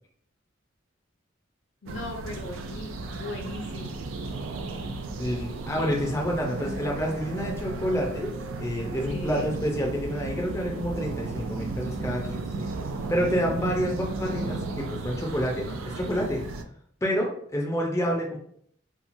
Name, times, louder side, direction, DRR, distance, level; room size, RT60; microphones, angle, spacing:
voice 1, 1.8-4.1 9.1-9.5, left 2 dB, 70° left, 2 dB, 0.7 m, -38 dB
sound 1, 1.9-16.6, right 3 dB, 85° right, 0.3 m, -34 dB
voice 2, 5.2-8.3 8.6-12.7 13.1-16.4 17.0-18.4, equal, 15° left, -1 dB, 0.4 m, -28 dB
2.9 x 2.2 x 2.6 m, 0.63 s
head